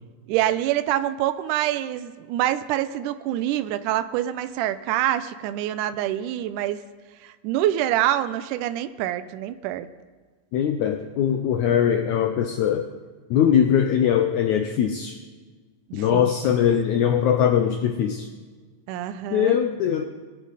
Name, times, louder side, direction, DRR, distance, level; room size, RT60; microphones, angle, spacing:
voice 1, 0.3-6.8 7.2-9.9 15.9-16.3 18.9-19.6, right 12 dB, 90° right, 12 dB, 1.8 m, -26 dB
voice 2, 10.5-12.9 13.3-15.2 15.9-18.3 19.3-20.0, left 9 dB, 85° left, 6 dB, 1.7 m, -21 dB
21.0 x 9.2 x 4.0 m, 1.4 s
omnidirectional pair, 4.2 m